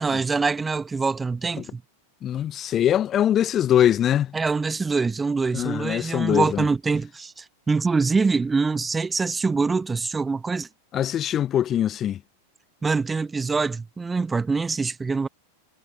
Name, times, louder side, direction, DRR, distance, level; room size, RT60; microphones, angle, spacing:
voice 1, 0.0-1.8 4.3-10.7 12.8-15.3, right 4 dB, 15° right, 1.2 m, -24 dB
voice 2, 2.2-4.3 5.5-6.6 10.9-12.2, left 10 dB, 30° left, 0.9 m, -22 dB
figure-of-eight pair, 90°, 0 cm